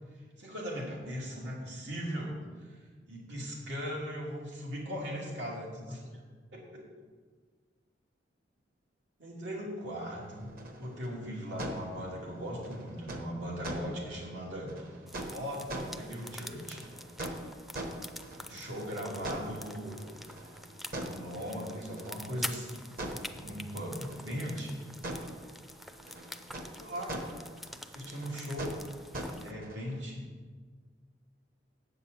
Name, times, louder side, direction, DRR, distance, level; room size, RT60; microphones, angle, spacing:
voice 1, 0.4-2.3 2.7-2.8 3.1-6.0 6.5-6.9 9.2-10.5 10.8-14.9 15.2-16.8 18.3-20.0 20.9-22.7 23.0-24.8 26.8-27.2 27.9-28.7 29.4-30.2, equal, 85° right, -4 dB, 2.8 m, -39 dB
sound 1, 10.2-30.0, right 1 dB, 55° right, 1.3 m, -44 dB
sound 2, 15.1-29.5, left 1 dB, ahead, 0.4 m, -46 dB
8.1 x 6.7 x 8.2 m, 1.5 s
head